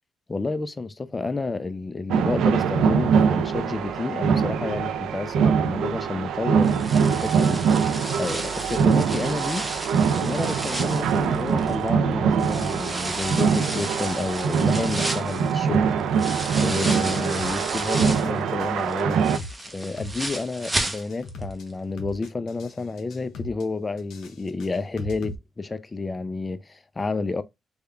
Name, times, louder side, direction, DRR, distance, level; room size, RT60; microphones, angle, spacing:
voice 1, 0.3-7.6 8.1-9.6 10.1-15.9 16.6-19.2 19.7-27.4, left 3 dB, 25° left, 0.4 m, -30 dB
sound 1, 2.1-19.4, right 6 dB, 80° right, 0.4 m, -23 dB
sound 2, 6.6-11.9 12.4-18.4 18.8-21.4 21.7-21.8 22.3-22.4, right 1 dB, 10° right, 0.7 m, -33 dB
sound 3, 17.3-17.6 18.0-18.7 19.0-19.6 20.0-20.7 21.0-21.6 22.0-22.7 23.0-23.6 24.0-25.3, left 2 dB, 75° left, 0.7 m, -38 dB
3.5 x 2.3 x 3.3 m
cardioid pair, 90°, 0 cm